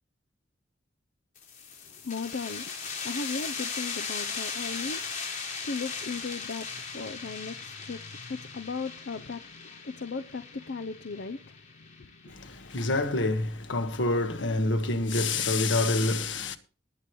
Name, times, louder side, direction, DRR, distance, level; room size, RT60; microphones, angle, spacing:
sound 1, 1.4-12.7, left 5 dB, 45° left, 4.5 m, -38 dB
voice 1, 1.9-5.1 5.6-12.3, left 4 dB, 65° left, 0.6 m, -37 dB
voice 2, 12.2-16.6, left 2 dB, 85° left, 1.5 m, -27 dB
19.5 x 8.4 x 3.1 m
head